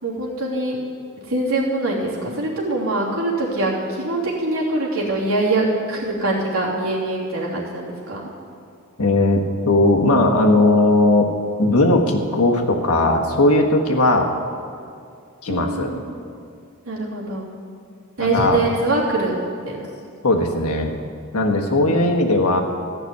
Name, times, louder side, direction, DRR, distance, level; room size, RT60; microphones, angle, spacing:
voice 1, 0.0-0.8 1.3-8.3 15.5-16.1 16.8-17.5 18.2-19.3 19.6-19.8, right 2 dB, 70° right, -5 dB, 3.0 m, -23 dB
voice 2, 9.0-11.3 11.6-14.3 15.4-15.9 18.2-18.6 20.2-20.9 21.3-22.6, left 2 dB, 90° left, 2 dB, 1.5 m, -17 dB
14.5 x 6.1 x 9.5 m, 2.4 s
head